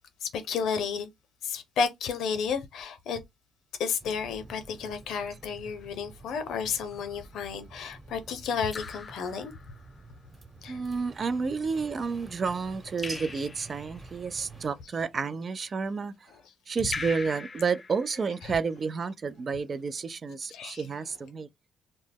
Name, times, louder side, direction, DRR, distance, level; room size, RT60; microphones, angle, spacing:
voice 1, 0.2-1.1 1.4-3.2 3.8-9.5 10.6-10.8 18.4-18.6 20.5-20.9, left 6 dB, 75° left, 0.6 m, -32 dB
sound 1, 4.0-14.7, right 3 dB, 25° right, 1.0 m, -50 dB
Raindrop / Drip, 6.9-7.4 8.7-10.1 13.0-14.1 16.9-18.6, left 4 dB, 35° left, 0.3 m, -41 dB
voice 2, 10.7-16.1 16.7-21.5, right 5 dB, 45° right, 0.3 m, -30 dB
2.1 x 2.0 x 3.3 m
supercardioid pair, 60°, 0 cm